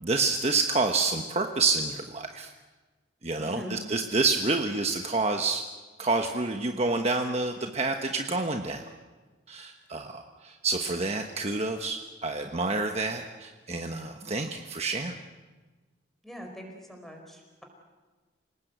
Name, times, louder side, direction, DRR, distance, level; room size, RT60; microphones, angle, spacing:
voice 1, 0.0-2.5 3.2-5.6 6.0-8.8 9.5-15.2, right 3 dB, 35° right, 4 dB, 1.2 m, -28 dB
voice 2, 3.4-3.8 16.2-17.6, equal, ahead, 2 dB, 4.7 m, -42 dB
28.5 x 19.0 x 8.1 m, 1.3 s
head